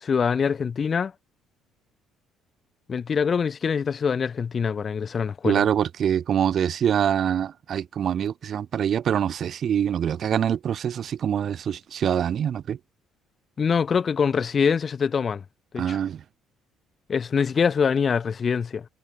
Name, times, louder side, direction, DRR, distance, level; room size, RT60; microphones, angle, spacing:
voice 1, 0.0-1.1 2.9-5.6 13.6-15.4 15.7-16.0 17.1-18.8, left 6 dB, 40° left, 1.4 m, -24 dB
voice 2, 5.4-12.8 15.8-16.2, right 9 dB, 55° right, 2.2 m, -24 dB
supercardioid pair, 75°, 0 cm